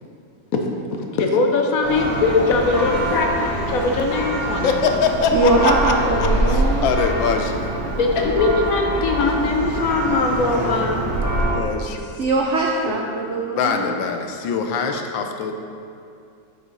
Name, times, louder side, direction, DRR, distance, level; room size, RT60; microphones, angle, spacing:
voice 1, 0.9-4.7 6.0-6.4 8.0-11.1 12.9-13.0, left 3 dB, 60° left, 2 dB, 0.9 m, -21 dB
Church bell, 1.8-11.5, right 1 dB, 65° right, 2.4 m, -24 dB
voice 2, 4.6-5.9 6.2-7.7 11.5-12.1 13.6-15.5, left 5 dB, 85° left, 4 dB, 1.4 m, -23 dB
voice 3, 5.3-6.9 12.2-13.9, right 2 dB, 85° right, -1 dB, 0.6 m, -21 dB
8.3 x 5.4 x 3.9 m, 2.5 s
omnidirectional pair, 2.0 m